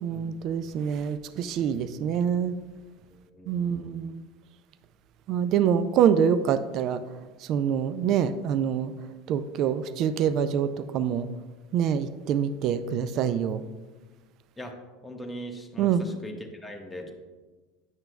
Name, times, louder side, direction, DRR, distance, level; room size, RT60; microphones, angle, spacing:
voice 1, 0.0-2.5 3.5-4.1 5.3-7.0 7.5-8.9 9.3-11.3 11.7-13.6 15.8-16.1, right 8 dB, 50° right, 13 dB, 0.3 m, -25 dB
voice 2, 3.3-4.0 14.6-14.7 15.0-17.1, equal, 10° left, 2 dB, 1.0 m, -40 dB
8.8 x 6.0 x 2.2 m, 1.3 s
hypercardioid pair, 90°, 0 cm